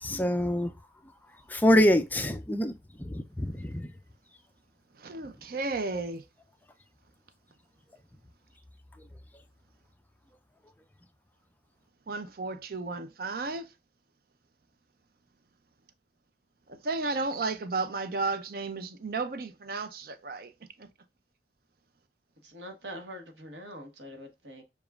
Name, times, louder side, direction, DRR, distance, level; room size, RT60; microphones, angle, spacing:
voice 1, 0.0-0.7 1.5-2.7 3.0-3.9, equal, 10° left, 0.4 m, -25 dB
voice 2, 5.0-6.2 12.1-13.7 16.7-20.5 20.8-20.9, right 3 dB, 55° right, 0.5 m, -33 dB
voice 3, 22.5-24.6, equal, 80° right, 1.1 m, -43 dB
6.9 x 2.4 x 2.3 m
head